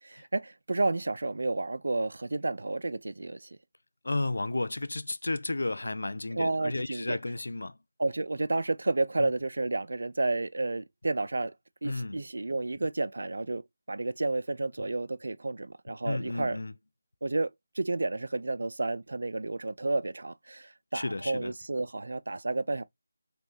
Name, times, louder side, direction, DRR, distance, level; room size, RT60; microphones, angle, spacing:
voice 1, 0.0-3.5 6.3-7.2 8.0-11.5 11.8-13.6 13.9-16.6 17.2-17.5 17.8-22.8, right 2 dB, 70° right, 0.3 m, -31 dB
voice 2, 4.0-7.7 11.8-12.2 16.0-16.7 20.9-21.5, left 2 dB, 70° left, 0.3 m, -32 dB
3.1 x 3.1 x 2.9 m
figure-of-eight pair, 160°, 0 cm